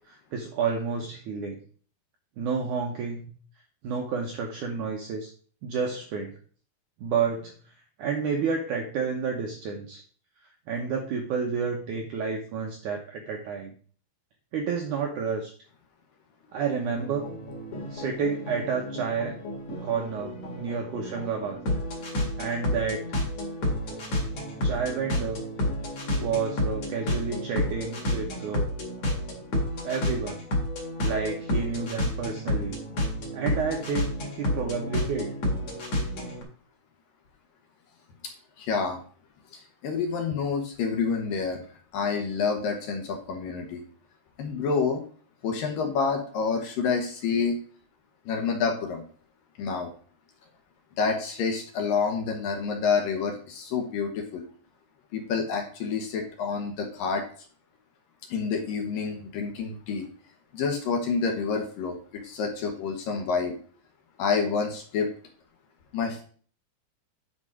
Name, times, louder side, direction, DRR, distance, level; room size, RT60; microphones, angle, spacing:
voice 1, 0.1-1.6 2.4-3.3 3.8-5.3 5.6-6.3 7.0-7.5 8.0-10.0 10.7-13.7 14.5-15.5 16.5-17.3 17.9-19.4 19.8-21.6 22.4-23.1 24.6-25.4 26.2-28.7 29.8-30.4 31.0-32.7 33.3-35.3, right 5 dB, 75° right, 2 dB, 1.8 m, -30 dB
sound 1, 16.8-36.4, left 1 dB, 50° left, 2.9 m, -31 dB
voice 2, 38.6-39.0 39.5-41.6 41.9-43.8 44.4-45.0 45.4-47.6 48.3-49.0 49.6-49.9 51.0-54.4 55.1-57.2 58.3-60.1 60.5-63.5 64.2-65.1 65.9-66.2, left 5 dB, 65° left, 3 dB, 2.6 m, -28 dB
9.6 x 5.0 x 4.9 m, 0.43 s
omnidirectional pair, 4.8 m